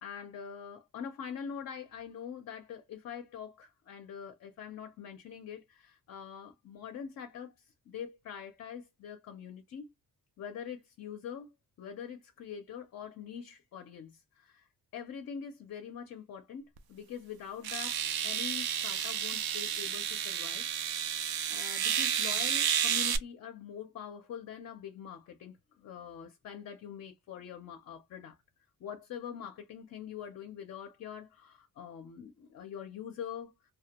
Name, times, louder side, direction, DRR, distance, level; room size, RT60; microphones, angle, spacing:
voice 1, 0.0-7.5 7.9-9.9 10.4-11.5 11.8-20.6 21.5-28.4 28.8-33.5, left 8 dB, 45° left, 0.4 m, -44 dB
sound 1, 16.8-16.9 17.6-23.2, right 9 dB, 80° right, 0.5 m, -31 dB
2.2 x 2.1 x 2.8 m
wide cardioid pair, 155°, 37 cm